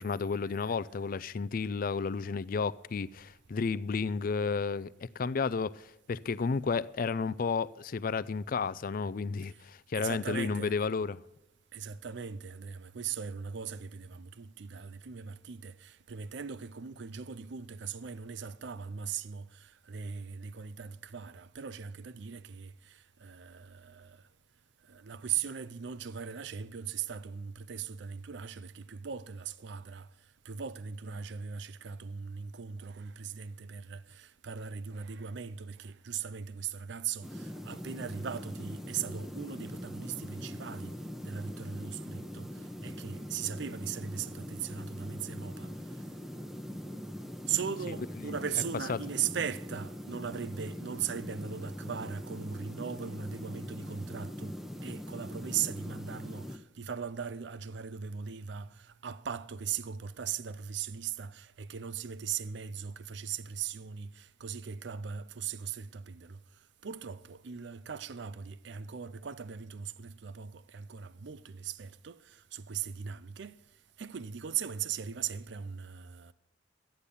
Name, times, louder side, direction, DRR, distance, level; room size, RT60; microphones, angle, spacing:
voice 1, 0.0-11.2 48.9-49.0, left 5 dB, 50° left, 0.4 m, -32 dB
voice 2, 9.9-10.8 11.7-24.2 24.9-30.1 30.5-40.9 41.2-42.5 42.8-45.7 47.5-54.6 54.8-66.4 66.8-73.6 74.0-76.3, right 7 dB, 65° right, 0.5 m, -39 dB
sound 1, 37.2-56.6, equal, ahead, 0.8 m, -42 dB
13.5 x 9.9 x 7.0 m
head